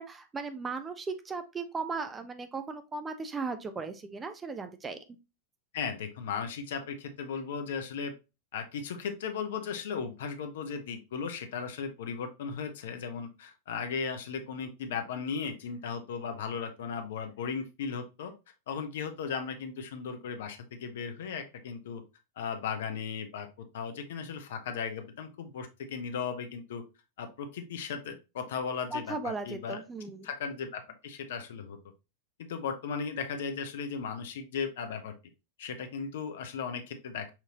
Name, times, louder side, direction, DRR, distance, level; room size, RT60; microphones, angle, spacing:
voice 1, 0.0-5.0 28.9-30.3, right 4 dB, 15° right, 8 dB, 0.5 m, -37 dB
voice 2, 5.7-8.1 8.5-18.3 18.7-22.0 22.4-23.5 23.7-26.8 27.2-29.8 30.2-31.8 32.4-35.1 35.6-37.3, left 6 dB, 60° left, 7 dB, 0.7 m, -36 dB
5.7 x 2.7 x 2.9 m, 0.27 s
figure-of-eight pair, 90°, 0 cm